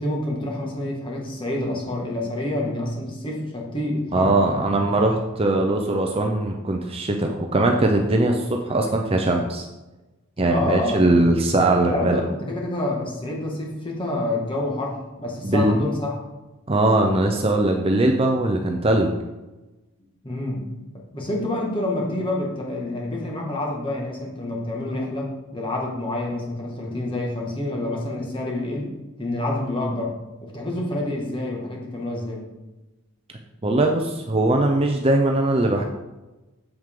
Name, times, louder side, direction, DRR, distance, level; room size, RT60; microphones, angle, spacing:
voice 1, 0.0-4.4 10.5-11.2 11.9-16.2 20.2-20.7 21.1-30.2 30.4-32.4, left 1 dB, 25° left, -2 dB, 1.9 m, -28 dB
voice 2, 4.1-9.7 10.4-12.2 15.4-15.8 16.7-19.1 33.6-35.8, right 2 dB, 25° right, 2 dB, 0.6 m, -20 dB
7.8 x 7.4 x 3.8 m, 1.1 s
head